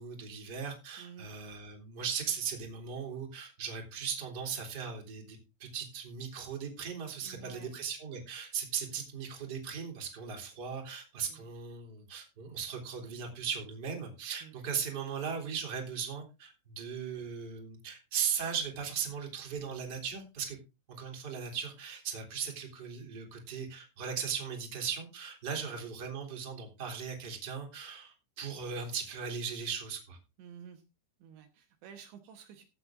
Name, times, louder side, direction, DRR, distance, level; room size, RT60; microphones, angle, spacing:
voice 1, 0.0-20.6 20.9-30.2, right 7 dB, 25° right, 2 dB, 2.9 m, -38 dB
voice 2, 1.0-1.3 7.2-7.7 8.8-9.0 11.3-11.4 14.4-14.5 25.5-25.6 30.4-30.8 31.2-32.7, right 8 dB, 75° right, 5 dB, 3.3 m, -51 dB
14.0 x 8.7 x 3.7 m, 0.27 s
omnidirectional pair, 5.5 m